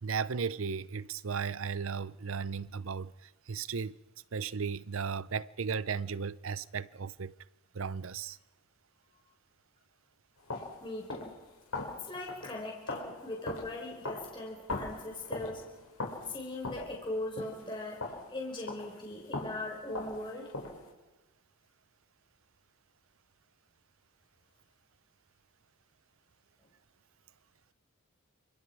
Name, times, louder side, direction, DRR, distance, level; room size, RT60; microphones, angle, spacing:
voice 1, 0.0-4.0 4.3-7.3 7.7-8.4, right 6 dB, 65° right, 0.6 m, -35 dB
sound 1, 10.4-19.0 19.3-20.9, left 2 dB, 80° left, 6.0 m, -41 dB
voice 2, 10.8-11.4 12.1-15.7 16.3-20.5, left 2 dB, 25° left, 4.8 m, -40 dB
29.0 x 25.5 x 4.9 m
head